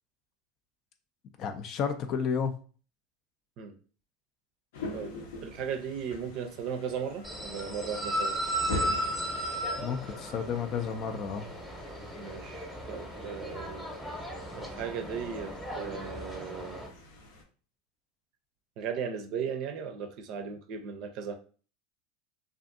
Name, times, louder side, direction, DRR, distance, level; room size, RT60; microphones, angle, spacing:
voice 1, 1.4-2.5 9.8-11.5, left 6 dB, 45° left, 7 dB, 0.3 m, -32 dB
sound 1, 4.7-17.4, left 3 dB, 75° left, 0.7 m, -44 dB
voice 2, 5.4-8.5 12.2-13.9 14.6-16.9 18.8-21.3, right 7 dB, 55° right, 5 dB, 0.5 m, -37 dB
sound 2, 7.2-16.9, right 1 dB, ahead, 0.8 m, -36 dB
2.5 x 2.5 x 2.5 m, 0.39 s
hypercardioid pair, 100°, 0 cm